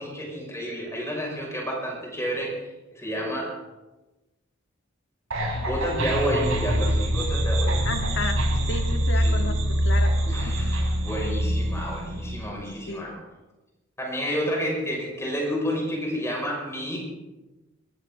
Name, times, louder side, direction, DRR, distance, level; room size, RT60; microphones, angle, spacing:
voice 1, 0.0-3.6 5.5-7.9 9.2-9.4 10.3-13.1 14.0-17.0, equal, 15° left, -2 dB, 6.1 m, -30 dB
sound 1, 5.3-12.5, equal, 85° right, 4.8 m, -24 dB
voice 2, 7.8-8.4 8.7-10.6 12.9-13.1, left 3 dB, 60° left, 5 dB, 1.8 m, -33 dB
22.5 x 15.5 x 3.9 m, 1.1 s
head